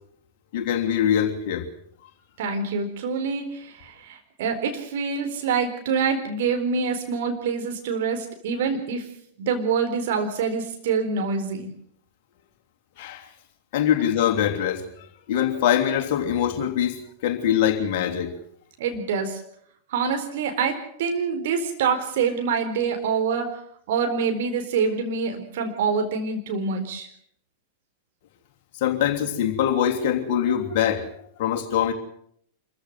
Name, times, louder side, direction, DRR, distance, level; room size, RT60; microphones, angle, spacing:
voice 1, 0.5-1.7 13.0-13.3 13.7-18.4 28.8-31.9, left 9 dB, 50° left, 3.1 m, -23 dB
voice 2, 2.4-9.1 9.4-11.7 18.8-19.4 19.9-23.6 23.9-27.1, right 5 dB, 55° right, 4.2 m, -26 dB
25.5 x 15.0 x 8.2 m
figure-of-eight pair, 95°, 0 cm